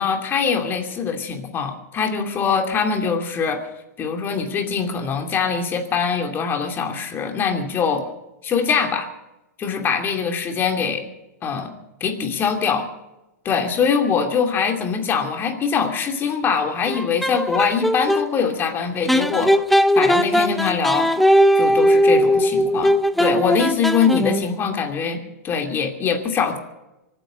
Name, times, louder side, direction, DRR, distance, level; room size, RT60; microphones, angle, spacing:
voice 1, 0.0-3.7 4.0-8.1 8.4-9.1 9.6-11.0 11.4-11.7 12.0-12.9 13.5-19.6 20.0-21.1 21.6-26.6, left 6 dB, 25° left, 5 dB, 2.7 m, -23 dB
sound 1, 16.9-18.3 19.1-24.5, equal, ahead, 0.6 m, -18 dB
24.0 x 9.2 x 6.4 m, 0.96 s
hypercardioid pair, 130°, 9 cm